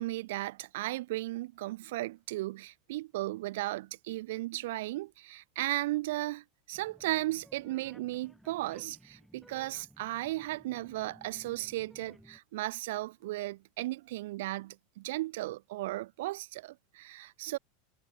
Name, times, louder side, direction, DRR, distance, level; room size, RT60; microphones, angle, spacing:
voice 1, 0.0-17.6, right 18 dB, 60° right, 0.8 m, -35 dB
sound 1, 6.7-12.4, equal, ahead, 1.6 m, -58 dB
supercardioid pair, 180°, 0 cm